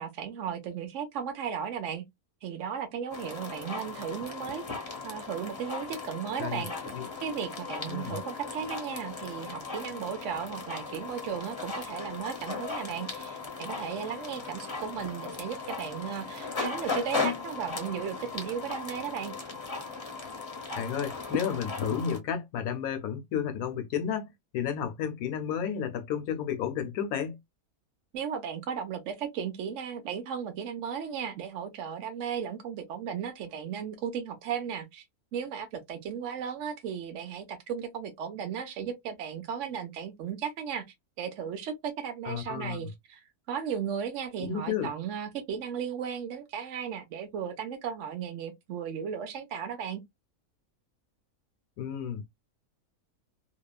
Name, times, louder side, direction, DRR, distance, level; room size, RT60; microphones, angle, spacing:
voice 1, 0.0-2.0 2.4-4.6 5.0-6.7 7.2-19.3 28.1-35.0 35.3-40.8 41.2-50.0, right 7 dB, 65° right, 0.9 m, -35 dB
sound 1, 3.1-22.2, left 4 dB, 25° left, 0.7 m, -37 dB
voice 2, 7.9-8.2 20.8-27.4 42.3-42.9 44.4-44.9 51.8-52.2, left 8 dB, 75° left, 1.0 m, -32 dB
2.9 x 2.2 x 2.3 m
omnidirectional pair, 1.6 m